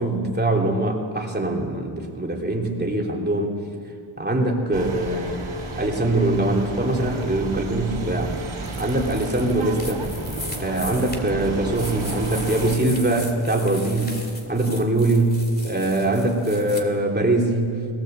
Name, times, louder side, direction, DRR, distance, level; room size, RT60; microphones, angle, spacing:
voice 1, 0.0-3.5 4.2-5.4 5.8-8.4 8.8-10.1 10.6-14.2 14.5-17.9, right 2 dB, 20° right, 0 dB, 3.0 m, -22 dB
sound 1, 4.7-12.8, right 3 dB, 75° right, 3.8 m, -32 dB
sound 2, 8.6-16.8, left 1 dB, 20° left, 2.6 m, -38 dB
19.0 x 18.0 x 7.9 m, 2.5 s
wide cardioid pair, 85°, 48 cm